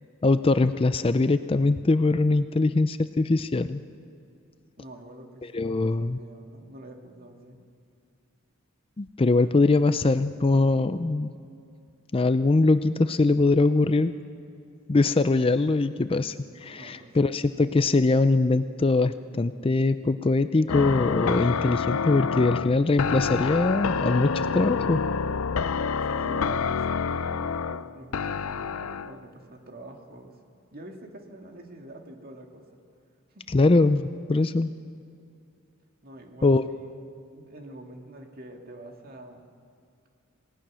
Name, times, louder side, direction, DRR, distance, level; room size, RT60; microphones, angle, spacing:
voice 1, 0.2-3.8 5.5-6.2 9.0-11.3 12.1-14.1 14.9-16.4 16.6-25.0 33.5-34.7 36.4-36.6, left 3 dB, 25° left, 12 dB, 0.4 m, -22 dB
voice 2, 4.8-7.6 16.7-17.4 26.0-26.8 27.1-30.4 30.7-32.8 33.3-33.4 36.0-36.9 37.3-39.5, right 1 dB, 45° right, 3 dB, 2.2 m, -46 dB
sound 1, 20.7-29.2, left 5 dB, 80° left, 0.5 m, -28 dB
27.0 x 18.5 x 6.2 m, 2.5 s
head